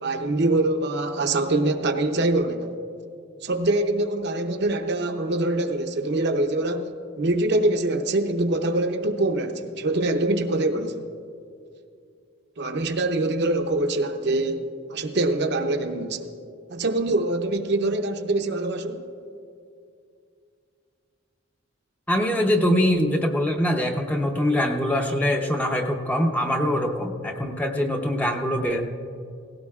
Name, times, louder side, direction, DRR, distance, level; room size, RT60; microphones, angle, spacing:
voice 1, 0.0-2.7 3.4-6.9 7.2-11.1 12.6-16.3 16.7-19.1, right 2 dB, 55° right, 5 dB, 0.7 m, -24 dB
voice 2, 22.1-28.8, equal, 10° left, 3 dB, 0.7 m, -23 dB
17.5 x 16.5 x 2.4 m, 2.4 s
head